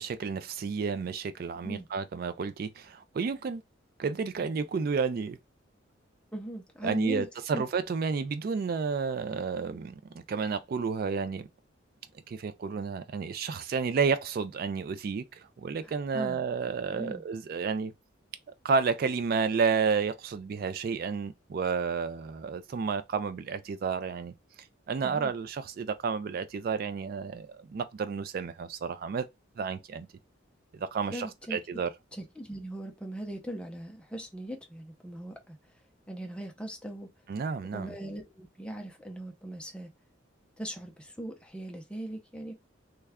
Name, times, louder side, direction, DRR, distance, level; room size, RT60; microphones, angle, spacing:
voice 1, 0.0-3.6 4.0-5.4 6.8-11.5 12.3-17.9 18.6-24.3 24.9-29.3 29.6-30.1 30.8-31.9 37.3-37.9, right 5 dB, 50° right, 0.3 m, -31 dB
voice 2, 6.3-7.6 15.8-16.4 16.9-17.2 25.0-25.3 31.1-31.6 32.1-35.6 36.1-37.1 37.7-39.9 40.6-42.5, right 1 dB, 5° left, 0.6 m, -39 dB
3.2 x 2.3 x 3.4 m
head